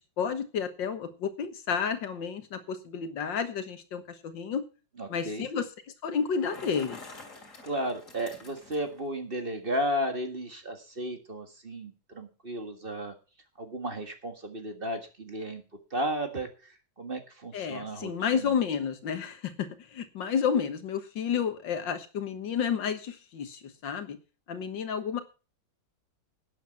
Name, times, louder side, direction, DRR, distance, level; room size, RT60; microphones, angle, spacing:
voice 1, 0.0-4.6 5.1-5.7 6.0-7.0 17.5-24.2 24.5-25.2, left 7 dB, 80° left, 10 dB, 2.0 m, -31 dB
voice 2, 5.0-5.5 7.6-13.1 13.6-15.6 15.9-18.5, equal, 30° right, 6 dB, 1.9 m, -34 dB
Bicycle, 6.2-9.0, left 3 dB, 45° left, 3.0 m, -48 dB
12.0 x 9.4 x 5.7 m, 0.33 s
omnidirectional pair, 2.0 m